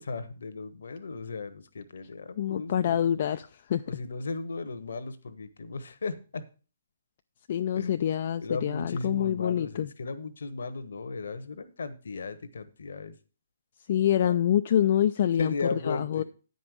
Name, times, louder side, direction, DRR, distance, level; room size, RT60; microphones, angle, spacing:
voice 1, 0.0-3.1 3.9-6.4 7.7-7.9 8.4-13.1 14.2-14.4 15.4-16.2, left 3 dB, 70° left, 1.1 m, -36 dB
voice 2, 2.4-3.8 7.5-9.9 13.9-15.5 15.9-16.2, left 10 dB, 50° left, 0.4 m, -26 dB
9.3 x 5.4 x 6.3 m
figure-of-eight pair, 135°, 0 cm